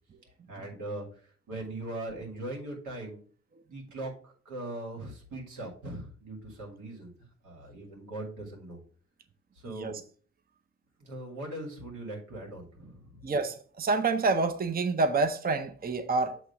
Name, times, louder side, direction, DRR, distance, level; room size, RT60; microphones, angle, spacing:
voice 1, 0.5-3.2 3.7-7.1 7.4-8.8 9.5-10.0 11.0-13.2, right 1 dB, 85° right, 2.5 m, -40 dB
voice 2, 9.7-10.0 13.2-16.4, right 3 dB, 30° right, 0.6 m, -28 dB
7.9 x 3.0 x 5.8 m
cardioid pair, 70°, 29 cm